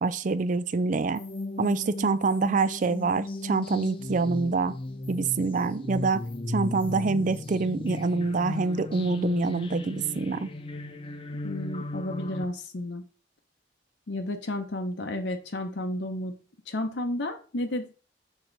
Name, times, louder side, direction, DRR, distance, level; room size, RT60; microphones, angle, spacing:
voice 1, 0.0-1.2 1.6-4.7 5.1-10.5, right 4 dB, 45° right, 0.4 m, -26 dB
sound 1, 1.2-12.4, left 2 dB, 30° left, 0.5 m, -35 dB
voice 2, 11.4-13.0 14.1-17.9, left 1 dB, 75° left, 0.8 m, -32 dB
6.2 x 4.4 x 3.9 m
head